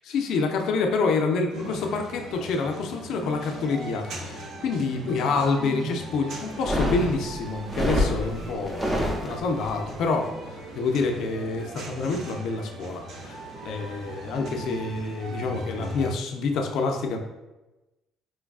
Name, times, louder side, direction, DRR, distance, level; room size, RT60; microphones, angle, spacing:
voice 1, 0.0-17.2, left 4 dB, 70° left, 3 dB, 0.4 m, -27 dB
sound 1, 1.5-16.1, right 2 dB, 65° right, 0.6 m, -39 dB
sound 2, 6.5-9.7, left 1 dB, 15° right, 0.6 m, -27 dB
4.3 x 2.3 x 2.3 m, 1.0 s
cardioid pair, 110°, 0 cm